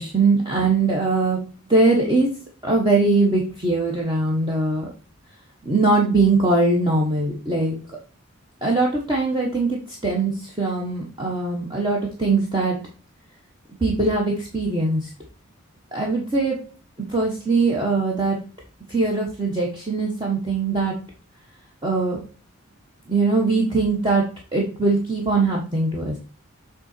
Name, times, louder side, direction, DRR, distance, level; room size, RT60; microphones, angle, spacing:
voice 1, 0.0-1.4 1.7-2.3 2.6-4.9 5.6-7.8 8.6-12.8 13.8-15.1 15.9-16.6 17.1-18.4 18.9-20.9 21.8-22.2 23.1-24.2 24.5-26.1, right 3 dB, 20° right, -2 dB, 1.1 m, -21 dB
7.8 x 3.8 x 4.4 m, 0.38 s
head